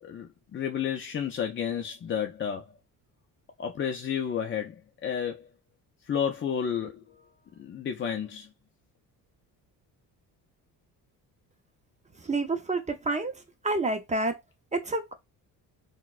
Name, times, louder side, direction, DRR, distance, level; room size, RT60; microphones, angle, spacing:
voice 1, 0.0-2.7 3.6-5.5 6.1-7.0 7.6-8.5, left 8 dB, 30° left, 0.4 m, -31 dB
voice 2, 12.2-13.3 13.6-14.4 14.7-15.1, right 2 dB, 20° right, 0.6 m, -28 dB
3.9 x 2.2 x 2.4 m
cardioid pair, 80°, 39 cm